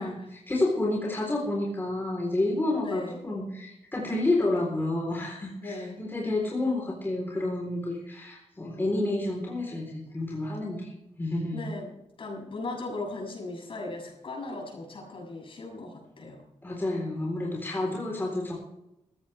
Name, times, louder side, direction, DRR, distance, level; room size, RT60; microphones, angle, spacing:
voice 1, 0.5-10.9 11.2-11.6 16.6-18.5, left 2 dB, 20° left, -2 dB, 3.9 m, -29 dB
voice 2, 2.8-3.2 5.6-6.3 11.5-11.9 12.2-16.4 17.8-18.0, left 2 dB, 50° left, -1 dB, 7.1 m, -38 dB
19.0 x 15.0 x 3.5 m, 0.85 s
wide cardioid pair, 135°, 11 cm